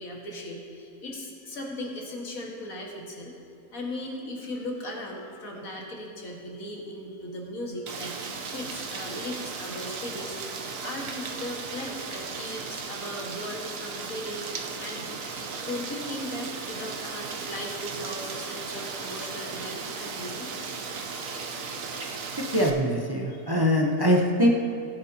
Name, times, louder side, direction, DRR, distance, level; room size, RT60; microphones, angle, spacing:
voice 1, 0.0-3.3 3.7-20.5 23.3-23.6, left 1 dB, 55° left, -1 dB, 2.1 m, -38 dB
Rain, 7.9-22.7, right 4 dB, 60° right, 1.2 m, -36 dB
voice 2, 22.4-24.5, equal, 20° right, -1 dB, 0.6 m, -23 dB
18.5 x 9.5 x 2.9 m, 2.7 s
omnidirectional pair, 1.8 m